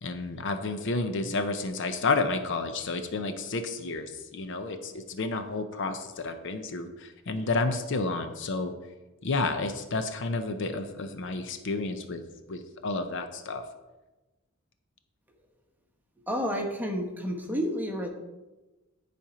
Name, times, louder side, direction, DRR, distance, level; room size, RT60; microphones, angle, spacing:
voice 1, 0.0-8.7 9.2-12.2 12.5-13.6, left 3 dB, 60° left, 8 dB, 0.6 m, -31 dB
voice 2, 16.3-18.1, equal, 10° right, 1 dB, 1.1 m, -30 dB
10.5 x 4.3 x 5.0 m, 1.1 s
head